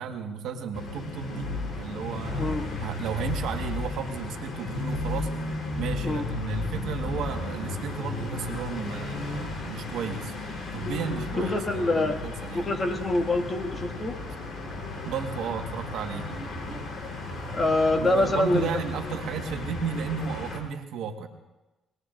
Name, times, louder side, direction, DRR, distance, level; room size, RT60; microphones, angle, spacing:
voice 1, 0.0-5.3 5.8-10.3 10.7-12.7 15.0-16.3 18.0-21.3, right 6 dB, 80° right, 5 dB, 1.5 m, -34 dB
sound 1, 0.7-20.6, left 2 dB, 50° left, 3.8 m, -34 dB
voice 2, 11.4-12.2 12.5-14.1 17.5-18.7, left 2 dB, 35° left, 3 dB, 1.9 m, -25 dB
25.0 x 20.0 x 2.6 m, 1.1 s
cardioid pair, 85°, 0 cm